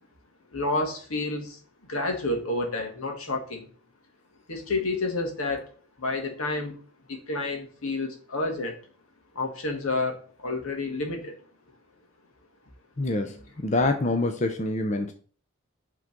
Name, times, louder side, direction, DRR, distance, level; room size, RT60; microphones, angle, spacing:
voice 1, 0.5-1.6 1.9-3.7 4.5-5.7 6.0-6.8 7.1-8.8 9.3-11.4, left 2 dB, 80° left, 1.9 m, -29 dB
voice 2, 13.0-13.4 13.6-15.1, left 2 dB, 35° left, 0.6 m, -25 dB
6.2 x 3.8 x 5.9 m
head